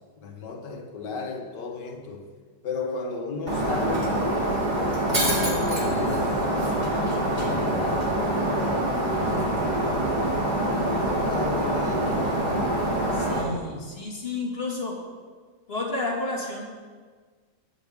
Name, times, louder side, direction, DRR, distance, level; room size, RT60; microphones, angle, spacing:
voice 1, 0.2-2.3 2.6-4.2 4.7-6.7 7.3-9.4 10.9-12.3, left 4 dB, 75° left, 3 dB, 1.9 m, -34 dB
Shatter, 3.5-13.4, right 1 dB, 25° right, 2.3 m, -25 dB
voice 2, 13.1-15.0 15.7-16.6, left 2 dB, 35° left, -2 dB, 2.3 m, -31 dB
21.0 x 8.3 x 3.6 m, 1.5 s
omnidirectional pair, 1.9 m